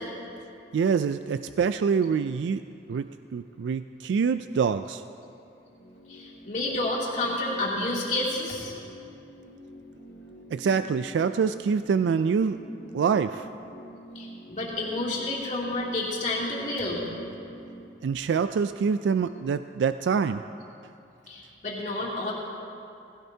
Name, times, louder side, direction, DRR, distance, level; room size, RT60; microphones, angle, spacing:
voice 1, 0.7-2.6 2.9-5.0 10.5-12.6 12.9-13.5 18.0-20.4, right 6 dB, 80° right, 11 dB, 0.3 m, -25 dB
sound 1, 5.4-17.9, equal, 70° left, 2.4 m, -47 dB
voice 2, 6.1-8.7 14.1-17.1 21.3-22.3, left 2 dB, 40° left, -5 dB, 2.8 m, -30 dB
19.0 x 16.0 x 2.8 m, 2.7 s
head